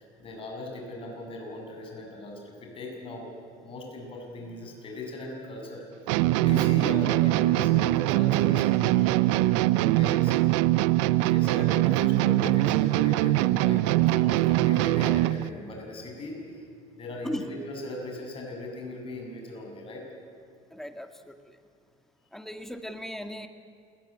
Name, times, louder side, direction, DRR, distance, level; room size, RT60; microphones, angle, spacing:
voice 1, 0.0-3.3 3.6-10.5 11.2-16.6 16.9-20.0, left 2 dB, 35° left, 1 dB, 7.7 m, -39 dB
sound 1, 6.1-15.5, right 17 dB, 85° right, 0.8 m, -22 dB
voice 2, 20.7-21.6 22.3-23.5, equal, ahead, 7 dB, 1.9 m, -37 dB
28.0 x 18.0 x 9.0 m, 2.5 s
supercardioid pair, 110°, 15 cm